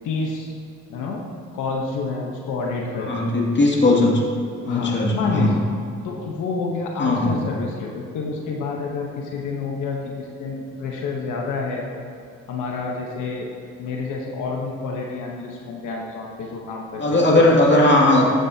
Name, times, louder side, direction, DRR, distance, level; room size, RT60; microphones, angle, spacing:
voice 1, 0.0-0.6 0.9-1.2 1.5-3.2 4.7-5.6 6.0-11.8 12.5-13.5 13.8-17.6, left 4 dB, 85° left, -1 dB, 1.1 m, -28 dB
voice 2, 3.0-4.2 4.7-5.5 7.0-7.4 17.0-18.3, left 2 dB, 35° left, -2 dB, 2.4 m, -17 dB
14.0 x 9.2 x 2.8 m, 2.5 s
cardioid pair, 90°, 30 cm